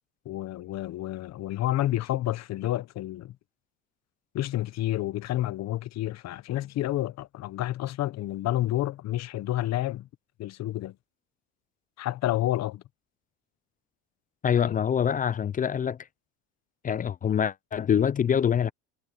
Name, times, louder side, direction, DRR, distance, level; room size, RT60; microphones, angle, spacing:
voice 1, 0.2-3.4 4.3-10.1 10.4-10.9 12.0-12.8 14.6-14.7, left 14 dB, 45° left, 1.0 m, -29 dB
voice 2, 14.4-16.0 16.8-18.7, left 8 dB, 25° left, 0.4 m, -25 dB
supercardioid pair, 115°, 37 cm